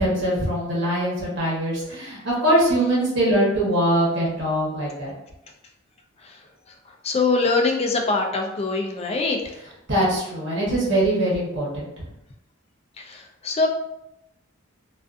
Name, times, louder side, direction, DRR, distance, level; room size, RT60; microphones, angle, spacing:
voice 1, 0.0-5.1 9.9-11.9, right 1 dB, 55° right, -5 dB, 1.0 m, -22 dB
voice 2, 7.0-9.4 13.0-13.7, left 3 dB, 30° left, 3 dB, 0.3 m, -23 dB
2.4 x 2.4 x 2.4 m, 0.84 s
head